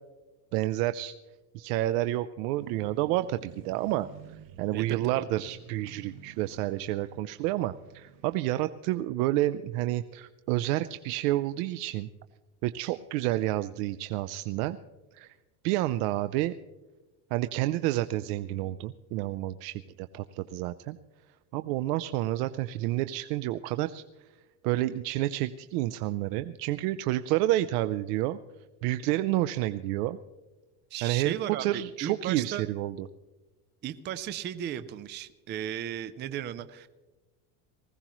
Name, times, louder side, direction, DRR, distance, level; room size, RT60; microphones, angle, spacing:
voice 1, 0.5-1.1 1.5-4.1 4.6-12.1 12.6-14.8 15.1-15.4 15.6-16.5 17.3-21.0 21.5-24.0 24.6-28.4 28.8-30.2 31.0-33.1, right 15 dB, 80° right, 12 dB, 0.6 m, -29 dB
sound 1, 2.5-8.4, right 9 dB, 45° right, 1.2 m, -51 dB
voice 2, 4.7-5.2 30.9-32.6 33.8-36.9, right 10 dB, 25° right, 13 dB, 0.4 m, -35 dB
20.0 x 16.0 x 3.0 m, 1.1 s
cardioid pair, 135°, 46 cm